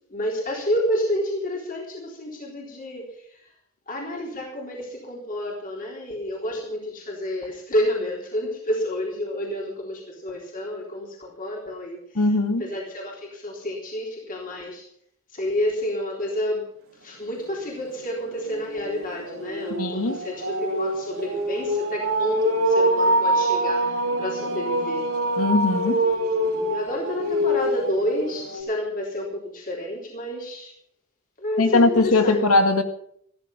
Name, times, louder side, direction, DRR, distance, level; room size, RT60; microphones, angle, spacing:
voice 1, 0.1-3.5 3.9-12.2 12.6-14.8 15.3-16.6 17.0-25.1 26.0-30.7 31.4-32.5, left 1 dB, 40° left, -1 dB, 3.7 m, -29 dB
voice 2, 12.2-12.6 19.8-20.2 25.4-26.0 31.6-32.8, left 2 dB, 80° left, 8 dB, 1.7 m, -20 dB
sound 1, 17.4-17.5 17.8-28.6, right 1 dB, 65° right, 3.9 m, -25 dB
14.0 x 14.0 x 5.7 m, 0.66 s
head